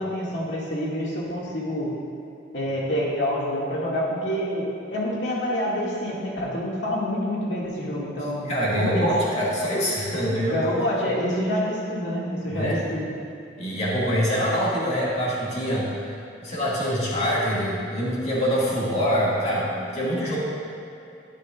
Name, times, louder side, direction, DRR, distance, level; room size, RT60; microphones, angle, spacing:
voice 1, 0.0-1.9 2.5-9.1 10.4-13.0, equal, 90° left, -5 dB, 2.2 m, -27 dB
voice 2, 8.5-10.7 12.5-12.8 13.6-15.9 16.4-20.4, equal, 40° left, -6 dB, 2.1 m, -24 dB
10.5 x 10.0 x 2.5 m, 2.8 s
head